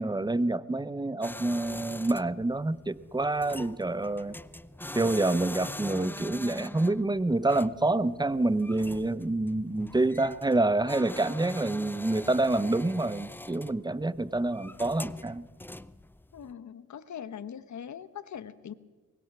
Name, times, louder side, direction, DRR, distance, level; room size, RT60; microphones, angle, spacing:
voice 1, 0.0-4.4 4.9-15.5, right 2 dB, 10° right, 15 dB, 0.9 m, -27 dB
sound 1, 1.2-16.5, left 1 dB, 5° left, 0.6 m, -43 dB
voice 2, 16.3-18.7, left 8 dB, 60° left, 13 dB, 1.3 m, -41 dB
23.5 x 20.5 x 6.2 m, 1.3 s
cardioid pair, 65°, 33 cm